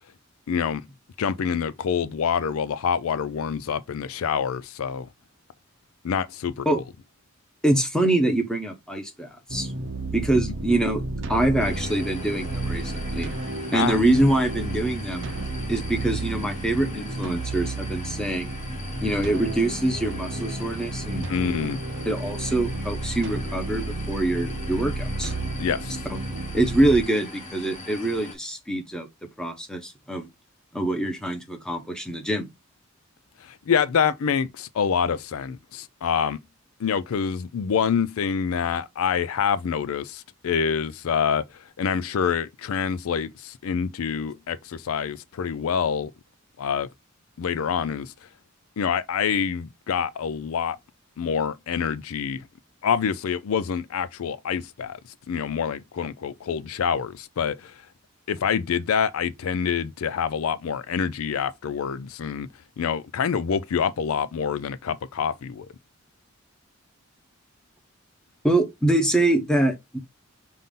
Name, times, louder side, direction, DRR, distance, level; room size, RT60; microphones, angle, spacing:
voice 1, 0.5-0.8 1.2-5.1 6.0-6.7 10.5-10.6 13.7-14.0 21.3-21.8 25.6-26.0 33.4-36.4 36.8-41.4 41.8-46.1 46.6-46.9 47.4-48.1 48.8-50.8 51.2-52.4 52.8-55.0 55.3-57.7 58.3-62.5 62.8-65.7, left 7 dB, 85° left, 0.4 m, -26 dB
voice 2, 7.6-9.7 10.1-11.0 11.3-13.3 13.7-15.3 15.7-18.5 19.0-21.3 22.0-25.3 26.1-26.2 26.5-29.1 29.4-30.3 30.7-32.5 68.4-70.0, right 1 dB, 5° left, 0.9 m, -24 dB
sound 1, 9.5-27.0, right 2 dB, 60° right, 0.7 m, -32 dB
sound 2, 11.6-28.3, left 2 dB, 35° left, 1.5 m, -41 dB
5.5 x 2.6 x 3.7 m
head